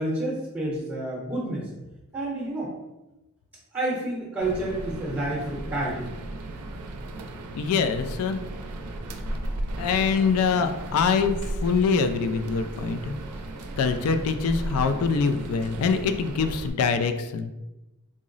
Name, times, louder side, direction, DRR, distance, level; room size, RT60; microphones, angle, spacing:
voice 1, 0.0-1.7 2.1-2.7 3.7-6.1, right 1 dB, 10° right, -4 dB, 0.7 m, -29 dB
sound 1, 4.4-16.7, right 1 dB, 85° right, 0.4 m, -35 dB
voice 2, 7.5-8.4 9.8-13.1 13.8-17.5, left 5 dB, 75° left, 8 dB, 0.3 m, -24 dB
3.7 x 2.0 x 3.8 m, 1.0 s
head